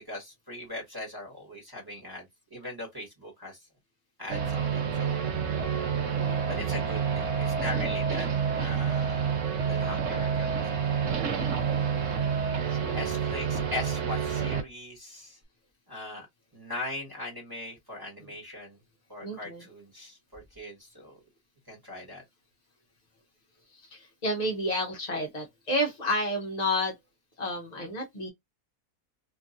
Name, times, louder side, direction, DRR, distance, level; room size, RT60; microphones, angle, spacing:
voice 1, 0.1-3.6 4.2-5.1 6.5-8.3 8.6-9.3 9.6-10.8 12.9-15.4 15.9-16.3 16.5-18.8 19.1-21.2 21.7-22.2, left 2 dB, 15° right, 1.3 m, -40 dB
sound 1, 4.3-14.6, right 7 dB, 60° right, 1.1 m, -28 dB
voice 2, 6.0-6.5 11.0-11.5 12.7-13.1 19.2-19.6 23.7-26.9 27.4-28.3, left 1 dB, 35° left, 0.7 m, -31 dB
3.0 x 2.5 x 2.5 m
omnidirectional pair, 1.6 m